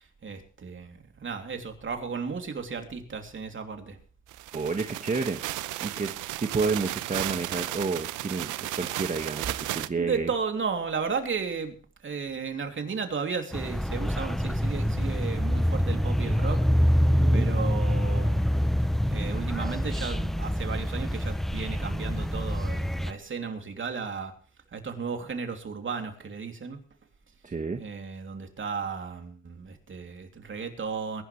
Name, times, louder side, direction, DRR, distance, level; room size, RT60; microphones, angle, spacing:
voice 1, 0.0-4.0 10.0-11.8 12.0-16.6 17.3-18.4 19.1-24.3 24.7-26.8 27.8-31.2, right 5 dB, 40° right, 5 dB, 3.0 m, -34 dB
sound 1, 4.3-9.9, right 16 dB, 90° right, 0.7 m, -34 dB
voice 2, 4.5-5.4 5.8-6.1 6.4-10.3 17.0-17.5 27.4-27.8, right 4 dB, 25° right, 5 dB, 1.3 m, -30 dB
sound 2, 13.5-23.1, equal, ahead, 0.5 m, -26 dB
22.0 x 11.0 x 3.3 m, 0.40 s
cardioid pair, 90°, 30 cm